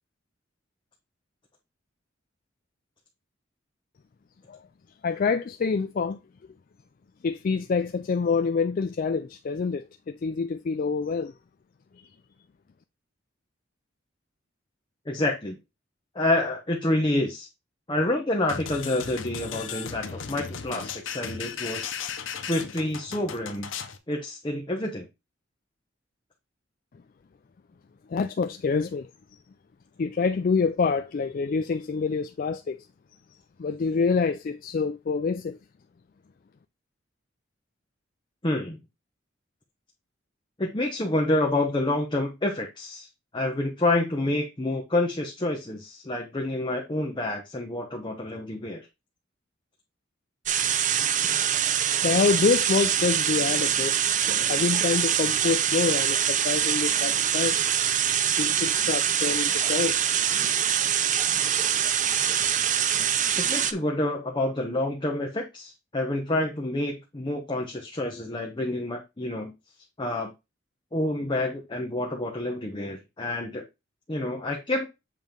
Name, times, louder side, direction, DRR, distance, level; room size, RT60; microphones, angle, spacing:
voice 1, 5.0-6.2 7.2-11.3 28.1-29.1 30.0-32.8 33.6-35.6 52.0-53.9 54.5-57.6 58.3-60.0 60.2-60.4, left 5 dB, 45° left, 0.4 m, -26 dB
voice 2, 15.1-15.6 16.1-17.5 17.9-21.9 22.5-23.7 24.1-25.1 38.4-38.8 40.6-43.1 43.3-48.9 63.4-69.5 70.0-70.3 70.9-73.6 74.1-74.9, left 1 dB, 25° left, 0.9 m, -28 dB
sound 1, 18.5-24.0, left 7 dB, 85° left, 0.8 m, -36 dB
sound 2, 50.5-63.7, right 9 dB, 40° right, 0.5 m, -24 dB
7.5 x 3.0 x 5.2 m
head